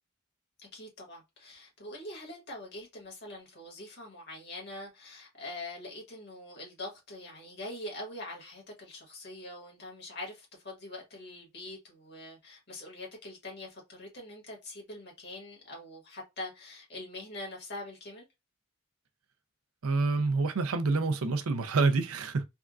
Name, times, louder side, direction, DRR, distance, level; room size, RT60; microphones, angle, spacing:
voice 1, 0.7-18.3, left 1 dB, 50° left, 1.5 m, -44 dB
voice 2, 19.8-22.5, right 3 dB, 85° right, 0.5 m, -27 dB
3.5 x 2.3 x 2.4 m
head